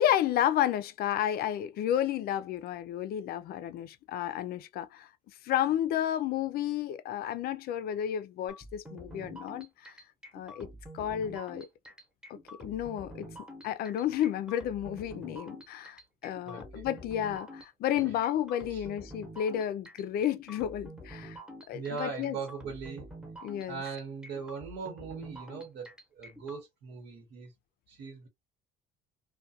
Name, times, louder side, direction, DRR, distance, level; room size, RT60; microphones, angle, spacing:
voice 1, 0.0-5.1 5.4-9.9 10.3-10.7 10.9-11.7 12.3-13.3 13.6-21.4 21.7-22.4 23.4-23.8, left 11 dB, 65° left, 0.4 m, -31 dB
sound 1, 8.5-26.6, right 1 dB, 5° right, 0.9 m, -47 dB
voice 2, 16.5-16.9 17.9-18.1 18.7-18.8 21.7-23.1 23.7-27.5 27.9-28.3, right 5 dB, 80° right, 1.1 m, -40 dB
2.3 x 2.2 x 2.7 m
cardioid pair, 110°, 17 cm